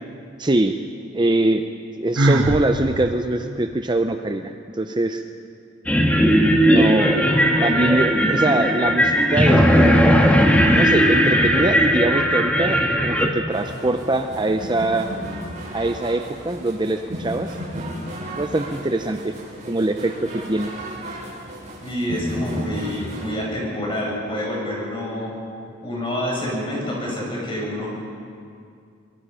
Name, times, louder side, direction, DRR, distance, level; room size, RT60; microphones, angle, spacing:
voice 1, 0.4-0.8 1.1-1.7 2.0-5.2 6.7-7.2 7.6-10.1 10.7-15.1 15.7-17.6 18.4-19.3 19.7-20.7, right 2 dB, 25° right, 6 dB, 0.7 m, -23 dB
Sigh, 2.2-2.7, right 1 dB, 90° right, 1.7 m, -18 dB
sound 1, 5.9-13.3, equal, 5° left, 1.8 m, -17 dB
sound 2, 13.5-23.3, equal, 40° right, 6.5 m, -34 dB
voice 2, 21.8-25.3 25.8-27.9, left 1 dB, 25° left, -3 dB, 7.5 m, -27 dB
24.5 x 22.5 x 5.7 m, 2.3 s
head